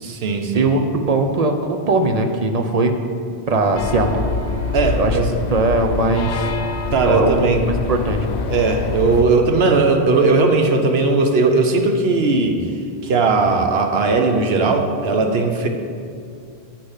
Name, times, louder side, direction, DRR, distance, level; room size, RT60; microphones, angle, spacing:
voice 1, 0.0-0.7 4.7-5.4 6.9-7.7 8.5-12.6 13.0-15.7, right 3 dB, 70° right, 4 dB, 1.0 m, -17 dB
voice 2, 0.5-2.9 3.5-4.3 5.0-5.2 5.5-6.5 7.0-8.2, right 2 dB, 40° right, 5 dB, 0.7 m, -19 dB
sound 1, 3.7-9.2, left 4 dB, 85° left, 1.0 m, -25 dB
8.5 x 6.6 x 5.7 m, 2.4 s
omnidirectional pair, 1.1 m